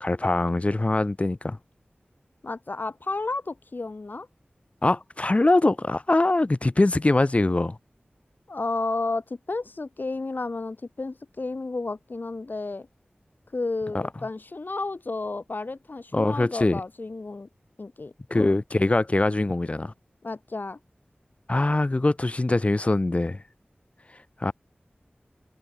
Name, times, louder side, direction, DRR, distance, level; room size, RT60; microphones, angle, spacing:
voice 1, 0.0-1.6 4.8-7.8 13.9-14.0 16.1-16.8 18.3-19.9 21.5-23.4 24.4-24.5, left 2 dB, 35° left, 0.9 m, -23 dB
voice 2, 2.4-4.3 8.5-12.9 13.5-17.5 17.8-18.5 20.2-20.8, left 3 dB, 60° left, 2.2 m, -32 dB
wide cardioid pair, 75°, 4 cm